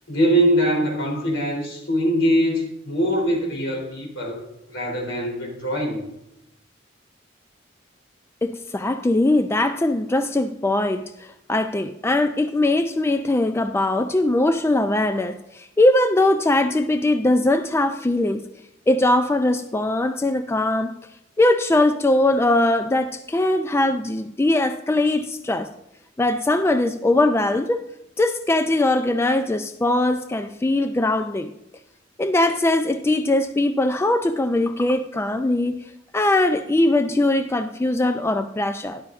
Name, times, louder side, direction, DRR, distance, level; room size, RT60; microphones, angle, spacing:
voice 1, 0.1-4.4 4.7-6.0, equal, 80° left, -1 dB, 3.3 m, -22 dB
voice 2, 8.4-18.4 18.9-20.9 21.4-25.7 26.2-27.8 28.2-31.5 32.2-35.8 36.1-39.0, left 2 dB, 15° left, 8 dB, 0.3 m, -21 dB
13.0 x 11.0 x 2.5 m, 0.83 s
head